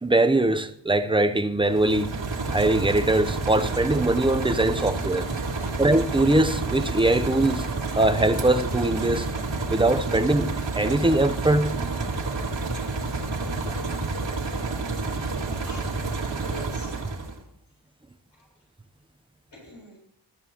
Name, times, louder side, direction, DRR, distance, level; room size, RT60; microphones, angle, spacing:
voice 1, 0.0-2.1 2.5-5.3 5.8-7.6 8.0-9.3 9.7-11.7, right 2 dB, 10° right, 0.7 m, -22 dB
sound 1, 1.6-17.4, right 3 dB, 85° right, 2.2 m, -29 dB
voice 2, 15.1-16.1 16.4-16.9 18.3-18.5 19.5-20.0, left 1 dB, 75° left, 7.4 m, -46 dB
21.5 x 12.5 x 3.0 m
wide cardioid pair, 120°, 44 cm